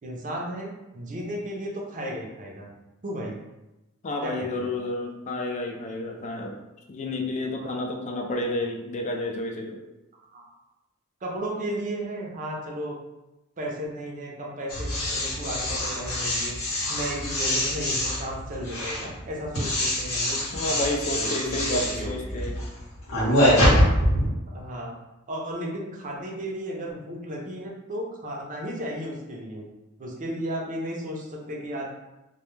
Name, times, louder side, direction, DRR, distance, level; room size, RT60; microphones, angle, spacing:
voice 1, 0.0-2.7 3.0-3.4 4.2-4.7 7.6-7.8 10.3-10.5 11.2-13.0 13.6-16.5 16.9-22.5 24.5-24.9 25.3-29.6 30.0-31.9, right 1 dB, 40° right, -2 dB, 0.5 m, -34 dB
voice 2, 4.0-6.6 6.9-9.8 20.5-22.6, left 1 dB, 35° left, 2 dB, 0.3 m, -30 dB
sound 1, 14.7-24.3, equal, 80° left, 0.9 m, -25 dB
2.2 x 2.2 x 3.0 m, 0.99 s
head